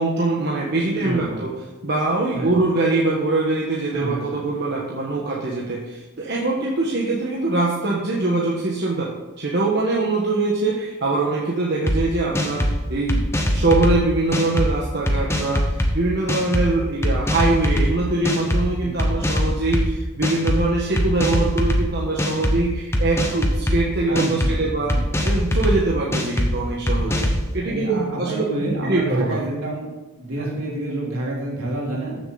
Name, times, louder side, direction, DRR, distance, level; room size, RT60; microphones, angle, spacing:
voice 1, 0.0-1.5 1.8-13.2 13.5-15.6 15.9-24.9 25.2-27.3 27.5-29.4 30.4-30.5, right 2 dB, 50° right, -4 dB, 1.3 m, -23 dB
voice 2, 1.0-1.4 2.3-2.5 3.9-4.4 18.8-19.0 24.1-25.0 26.9-27.3 27.6-29.9 30.2-32.2, right 1 dB, 75° right, -4 dB, 3.3 m, -29 dB
sound 1, 11.9-12.0 12.4-12.7 13.1-13.9 14.3-14.7 15.1-15.9 16.3-16.7 17.0-17.9 18.3-18.6 19.0-19.8 20.2-20.6 21.0-21.8 22.2-22.6 22.9-23.8 24.2-24.5 24.9-25.7 26.1-26.5 26.9-27.4, equal, 10° left, 1.0 m, -21 dB
13.5 x 6.9 x 4.0 m, 1.1 s
head